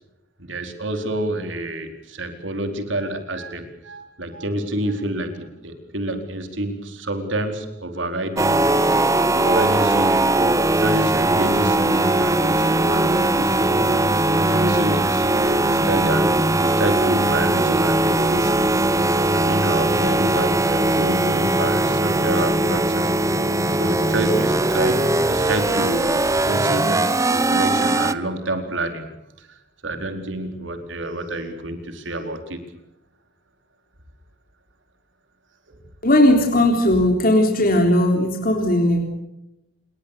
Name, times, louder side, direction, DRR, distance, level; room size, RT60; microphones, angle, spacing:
voice 1, 0.4-8.6 9.3-10.2 10.8-13.7 14.3-18.6 19.3-23.1 23.8-26.2 26.5-29.1 29.4-29.5 29.8-32.6 35.7-35.8, right 1 dB, 75° right, 6 dB, 4.4 m, -28 dB
sound 1, 8.4-28.1, right 2 dB, 15° right, 1.0 m, -19 dB
voice 2, 36.0-39.0, left 1 dB, 50° left, 2 dB, 3.7 m, -17 dB
27.5 x 22.5 x 6.9 m, 0.89 s
head